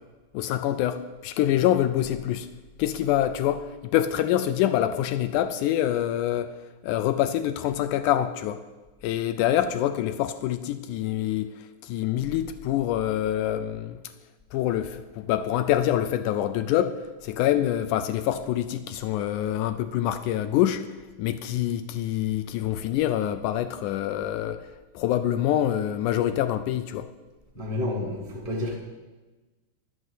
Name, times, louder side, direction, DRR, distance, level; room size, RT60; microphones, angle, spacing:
voice 1, 0.3-2.5 2.8-6.5 6.8-8.6 9.0-11.5 11.8-14.0 14.5-20.8 21.2-24.7 25.0-27.1, left 12 dB, 80° left, 10 dB, 1.9 m, -25 dB
voice 2, 27.5-28.7, left 1 dB, 25° left, -1 dB, 0.8 m, -30 dB
11.0 x 6.2 x 8.1 m, 1.2 s
omnidirectional pair, 3.9 m